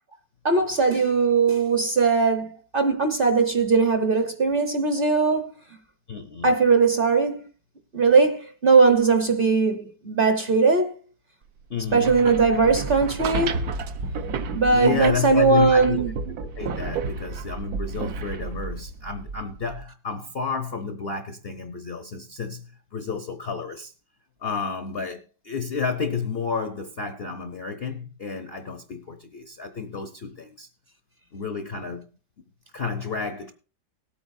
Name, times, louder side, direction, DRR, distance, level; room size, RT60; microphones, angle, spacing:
voice 1, 0.4-5.5 6.4-7.4 7.9-10.9 11.9-13.7 14.5-16.1, right 4 dB, 40° right, 1.0 m, -20 dB
voice 2, 6.1-6.5 11.7-12.2 14.7-16.1 16.6-23.9 24.4-30.7 31.3-32.0 32.7-33.5, left 5 dB, 50° left, 0.8 m, -31 dB
sound 1, 11.8-19.8, right 4 dB, 65° right, 1.3 m, -31 dB
18.5 x 8.7 x 2.6 m
omnidirectional pair, 1.8 m